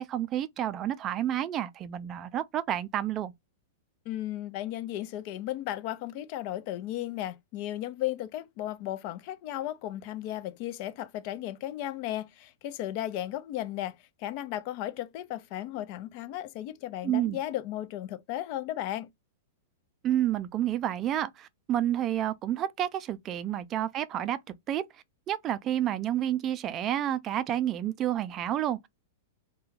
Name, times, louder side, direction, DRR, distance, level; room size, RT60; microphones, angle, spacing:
voice 1, 0.0-3.3 17.0-17.4 20.0-24.4 24.7-24.8 25.3-28.9, right 11 dB, 35° right, 0.3 m, -29 dB
voice 2, 4.1-19.1, left 13 dB, 50° left, 0.4 m, -35 dB
2.3 x 2.2 x 3.1 m
hypercardioid pair, 115°, 0 cm